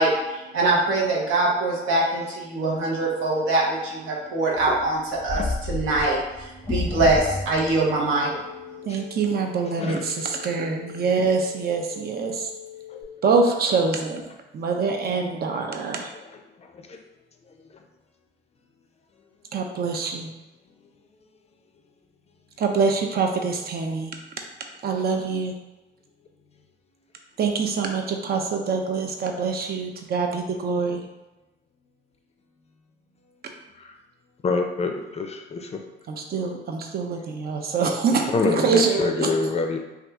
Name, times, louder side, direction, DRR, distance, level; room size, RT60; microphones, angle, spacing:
voice 1, 0.0-8.3, right 2 dB, 85° right, -4 dB, 0.9 m, -23 dB
sound 1, 4.5-8.0, left 2 dB, 10° left, 0.8 m, -30 dB
sound 2, 8.0-13.0, left 12 dB, 15° right, 1.1 m, -42 dB
voice 2, 8.9-12.5 13.2-16.1 19.5-20.3 22.6-24.1 24.8-25.5 27.4-31.0 36.1-39.3, right 4 dB, 50° right, 3 dB, 0.5 m, -25 dB
voice 3, 34.4-35.7 38.3-39.8, left 3 dB, 30° left, 4 dB, 0.4 m, -25 dB
2.8 x 2.4 x 3.4 m, 1.0 s
cardioid pair, 90°, 20 cm